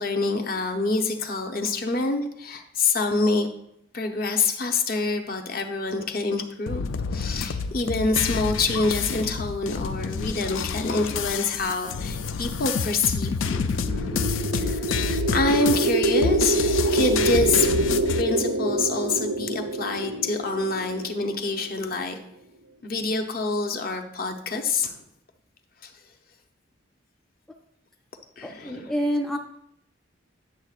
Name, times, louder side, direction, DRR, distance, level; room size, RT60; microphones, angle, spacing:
voice 1, 0.0-3.5 3.9-6.8 7.1-16.6 16.9-17.7 18.2-22.2 22.8-25.0 25.8-25.9 28.4-28.9, left 3 dB, 50° left, 4 dB, 0.8 m, -26 dB
sound 1, 6.7-18.2, left 5 dB, 80° left, 0.4 m, -28 dB
sound 2, 13.7-21.8, right 2 dB, 85° right, 0.6 m, -26 dB
voice 2, 28.4-29.4, equal, ahead, 1 dB, 0.4 m, -27 dB
9.9 x 6.6 x 2.4 m, 0.74 s
head